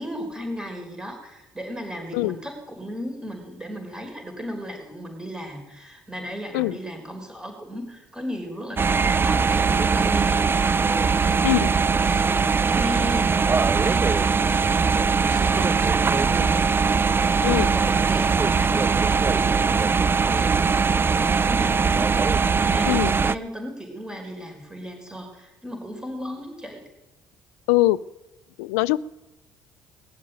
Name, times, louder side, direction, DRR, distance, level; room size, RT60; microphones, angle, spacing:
voice 1, 0.0-26.9, equal, 10° right, 2 dB, 5.0 m, -36 dB
sound 1, 8.8-23.3, right 5 dB, 25° right, 0.5 m, -21 dB
voice 2, 11.4-11.8 17.4-17.7 22.9-23.1 27.7-28.0 28.6-29.0, left 18 dB, 90° left, 20 dB, 0.4 m, -22 dB
19.5 x 7.4 x 9.3 m, 1.0 s
supercardioid pair, 75°, 8 cm